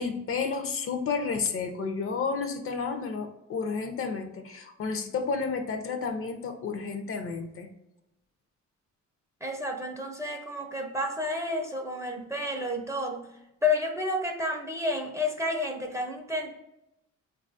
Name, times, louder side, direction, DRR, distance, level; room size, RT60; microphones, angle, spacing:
voice 1, 0.0-7.7, left 5 dB, 45° left, 6 dB, 0.5 m, -31 dB
voice 2, 9.4-13.3 13.6-16.5, left 2 dB, 10° right, 2 dB, 0.5 m, -30 dB
3.8 x 2.3 x 2.5 m, 0.87 s
cardioid pair, 90°, 30 cm